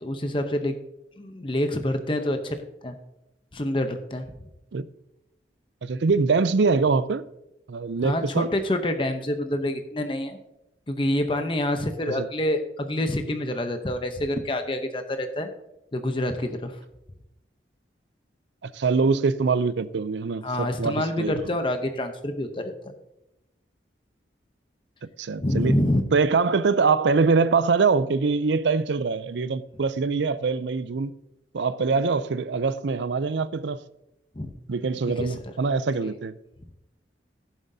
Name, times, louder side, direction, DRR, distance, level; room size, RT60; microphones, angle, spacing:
voice 1, 0.0-0.7 1.2-2.6 2.8-2.9 3.5-4.3 8.0-10.4 10.9-15.5 15.9-16.8 20.4-22.9 25.4-26.0 31.9-32.0 34.4-34.5 35.2-35.4 36.0-36.1, left 1 dB, 25° left, 0.7 m, -27 dB
voice 2, 5.8-7.2 7.7-8.5 12.2-12.3 18.6-21.5 25.2-25.8 26.1-31.1 31.5-33.8 34.7-36.3, right 4 dB, 75° right, 0.5 m, -23 dB
15.0 x 7.5 x 2.7 m
head